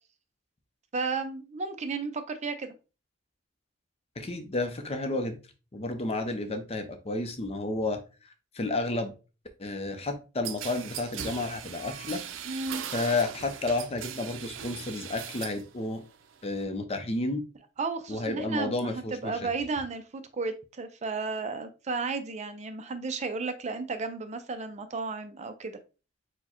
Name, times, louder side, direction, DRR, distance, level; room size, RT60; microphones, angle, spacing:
voice 1, 0.9-2.7 12.5-12.8 17.8-25.8, right 4 dB, 35° right, 9 dB, 0.5 m, -33 dB
voice 2, 4.2-5.4 5.7-8.0 8.2-9.1 9.6-12.2 12.9-16.0 16.4-17.4 18.1-19.4, left 2 dB, 30° left, 7 dB, 0.6 m, -31 dB
sound 1, 10.4-15.7 16.0-16.6, right 8 dB, 90° right, 0.5 m, -39 dB
4.5 x 2.2 x 4.3 m, 0.32 s
head